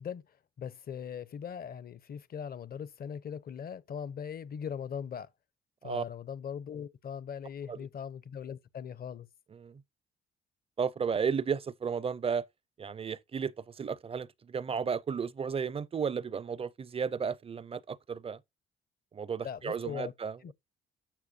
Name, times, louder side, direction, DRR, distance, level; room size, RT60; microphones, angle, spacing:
voice 1, 0.0-5.3 5.8-9.3 19.4-20.1 20.4-20.5, left 7 dB, 50° left, 0.7 m, -40 dB
voice 2, 9.5-9.8 10.8-12.5 12.8-18.4 19.1-20.5, right 6 dB, 30° right, 0.5 m, -33 dB
11.5 x 6.6 x 2.7 m
cardioid pair, 90°, 20 cm